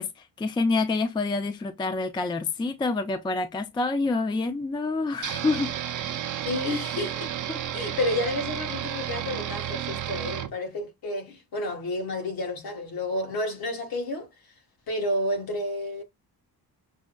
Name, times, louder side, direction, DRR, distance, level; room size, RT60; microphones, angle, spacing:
voice 1, 0.0-5.8 7.5-7.6, left 3 dB, 15° left, 0.3 m, -27 dB
sound 1, 5.2-10.5, right 10 dB, 55° right, 0.6 m, -32 dB
voice 2, 6.4-7.3 7.7-14.3 14.9-16.0, left 1 dB, 65° left, 1.6 m, -30 dB
6.1 x 2.1 x 2.2 m
wide cardioid pair, 170°, 38 cm